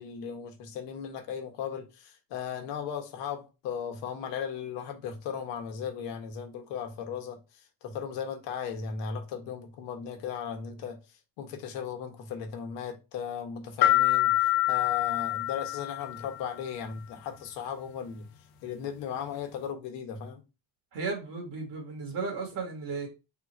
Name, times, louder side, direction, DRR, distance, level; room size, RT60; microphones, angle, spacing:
voice 1, 0.0-7.4 7.8-11.0 11.4-18.3 18.6-20.4, left 7 dB, 85° left, 1.1 m, -36 dB
sound 1, 13.8-16.5, left 16 dB, 60° left, 0.7 m, -26 dB
voice 2, 20.9-23.1, right 4 dB, 55° right, 1.8 m, -34 dB
3.7 x 2.5 x 4.2 m
cardioid pair, 170°, 42 cm